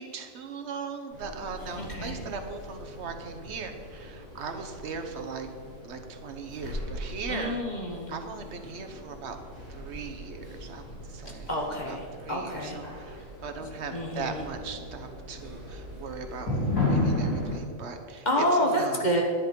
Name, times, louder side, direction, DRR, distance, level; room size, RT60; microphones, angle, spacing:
voice 1, 0.0-5.5 5.8-7.6 8.1-9.4 9.7-10.8 11.1-11.5 11.8-19.0, right 5 dB, 50° right, 6 dB, 1.2 m, -39 dB
sound 1, 1.1-17.6, left 1 dB, 75° left, 4.1 m, -36 dB
voice 2, 1.8-2.3 7.3-8.1 11.5-12.8 13.9-14.4 18.2-19.2, equal, 30° left, 1 dB, 1.3 m, -28 dB
10.5 x 10.5 x 5.3 m, 2.2 s
omnidirectional pair, 1.7 m